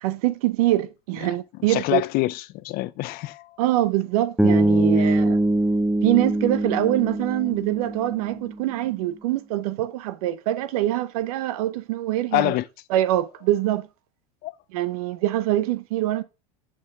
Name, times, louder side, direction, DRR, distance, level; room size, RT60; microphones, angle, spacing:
voice 1, 0.0-2.0 3.6-5.4 6.0-12.5 12.9-13.9 14.7-16.2, right 14 dB, 75° right, 0.8 m, -24 dB
voice 2, 1.7-3.6 5.0-5.1 12.3-12.6 14.4-14.5, left 19 dB, 50° left, 0.6 m, -26 dB
Bass guitar, 4.4-8.5, right 1 dB, ahead, 0.7 m, -22 dB
6.6 x 5.4 x 3.7 m
hypercardioid pair, 100°, 19 cm